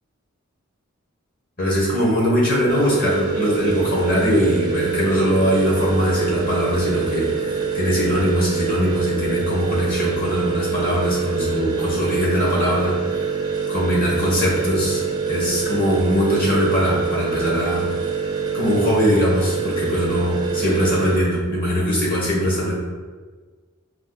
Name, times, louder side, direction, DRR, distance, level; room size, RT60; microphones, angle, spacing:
voice 1, 1.6-13.0 13.7-17.9 18.5-22.7, equal, 45° left, -5 dB, 1.3 m, -21 dB
sound 1, 2.7-21.2, right 6 dB, 20° right, 0.5 m, -25 dB
4.7 x 2.5 x 3.9 m, 1.5 s
head